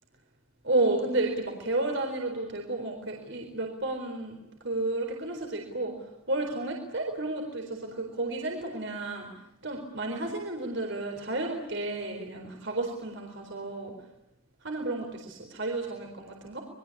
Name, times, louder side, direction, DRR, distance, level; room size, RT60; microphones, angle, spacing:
voice 1, 0.6-4.4 4.6-9.3 9.6-13.9 14.6-16.6, right 2 dB, 55° right, 2 dB, 4.3 m, -32 dB
27.5 x 22.5 x 8.6 m, 0.85 s
head